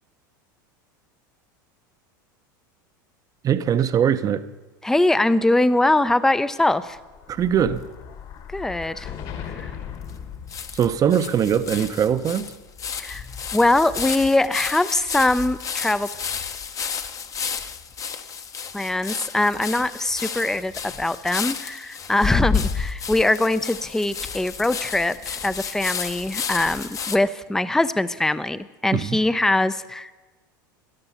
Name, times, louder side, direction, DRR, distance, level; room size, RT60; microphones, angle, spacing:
voice 1, 3.4-4.4 7.3-7.8 10.7-12.5 28.9-29.2, right 8 dB, 35° right, 0.7 m, -21 dB
voice 2, 4.8-7.0 8.5-9.1 9.5-9.7 13.0-13.3 13.5-16.1 18.7-30.1, left 2 dB, 5° left, 0.5 m, -22 dB
Explosion, 6.6-11.3, left 8 dB, 50° left, 1.8 m, -38 dB
sound 1, 7.4-8.3 8.9-9.0 9.1-9.2 10.1-10.2 10.5-27.2, left 6 dB, 30° left, 0.8 m, -31 dB
13.0 x 11.5 x 5.5 m
hypercardioid pair, 95°, 11 cm